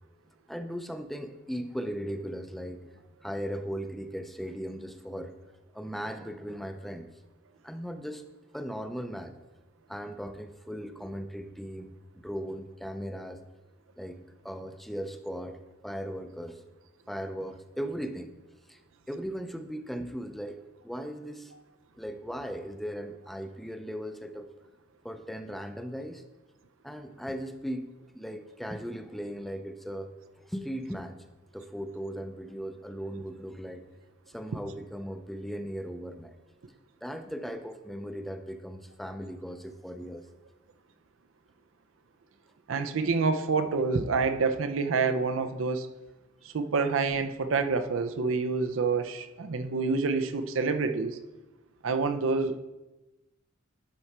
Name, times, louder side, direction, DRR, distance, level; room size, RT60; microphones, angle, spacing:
voice 1, 0.5-2.9 3.2-5.3 5.7-7.1 7.6-8.2 8.5-9.3 9.9-13.4 14.0-14.2 14.4-16.6 17.1-18.3 18.7-18.8 19.1-21.5 22.0-24.5 25.0-26.2 26.8-31.2 31.5-33.8 34.3-36.3 37.0-40.3, equal, ahead, 8 dB, 0.4 m, -38 dB
voice 2, 42.7-45.9 46.5-51.2 51.8-52.6, right 4 dB, 85° right, 9 dB, 0.5 m, -27 dB
11.5 x 4.5 x 4.3 m, 1.1 s
head